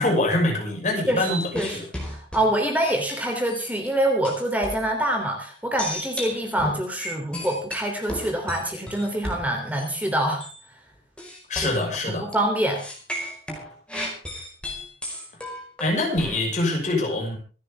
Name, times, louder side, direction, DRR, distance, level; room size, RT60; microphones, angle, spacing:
voice 1, 0.0-1.9 11.5-12.2 15.8-17.4, left 2 dB, 40° left, 0 dB, 6.2 m, -24 dB
voice 2, 1.1-1.8 2.1-10.4 11.6-11.8 12.1-12.8, right 1 dB, 10° right, 2 dB, 3.2 m, -25 dB
sound 1, 1.2-3.9 4.2-4.9 5.8-10.1 10.4-10.6 11.2-12.3 12.8-16.4, equal, 5° left, 4.9 m, -34 dB
26.5 x 9.9 x 3.6 m, 0.37 s
head